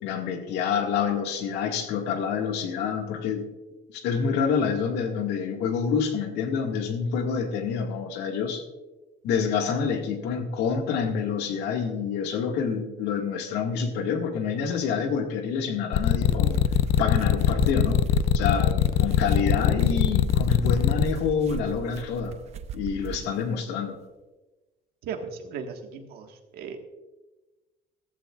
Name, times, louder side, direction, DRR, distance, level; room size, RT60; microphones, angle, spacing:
voice 1, 0.0-3.5 3.9-8.6 9.2-16.6 17.0-18.0 18.3-22.4 22.7-24.0, left 6 dB, 85° left, 3 dB, 1.9 m, -27 dB
sound 1, 15.9-21.0, left 11 dB, 60° left, 0.6 m, -21 dB
sound 2, 16.1-23.3, right 7 dB, 40° right, 0.6 m, -36 dB
voice 2, 25.0-26.8, right 6 dB, 65° right, 4 dB, 1.6 m, -37 dB
15.5 x 14.5 x 2.4 m, 1.1 s
cardioid pair, 175°, 17 cm